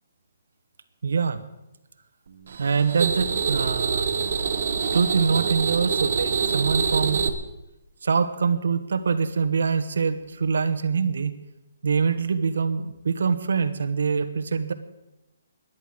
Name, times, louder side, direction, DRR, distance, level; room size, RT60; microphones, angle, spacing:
voice 1, 1.0-1.4 2.6-4.1 4.9-7.3 8.0-11.3 11.8-14.7, right 5 dB, 80° right, 11 dB, 1.3 m, -24 dB
sound 1, 2.5-7.3, right 6 dB, 55° right, 1.3 m, -25 dB
13.0 x 10.5 x 7.9 m, 0.96 s
hypercardioid pair, 165°, 0 cm